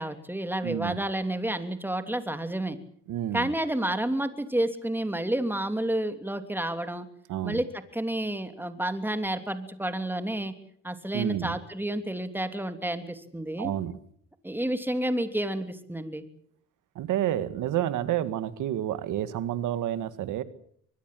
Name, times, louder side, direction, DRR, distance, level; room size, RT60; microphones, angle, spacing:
voice 1, 0.0-2.8 3.3-7.1 7.4-10.5 10.8-13.7 14.4-16.3, right 1 dB, 5° right, 9 dB, 3.0 m, -30 dB
voice 2, 0.6-1.0 3.1-3.5 7.3-7.6 11.1-11.6 13.6-13.9 17.0-20.4, right 12 dB, 85° right, 13 dB, 1.9 m, -29 dB
24.5 x 21.0 x 7.8 m, 0.65 s
cardioid pair, 90°, 30 cm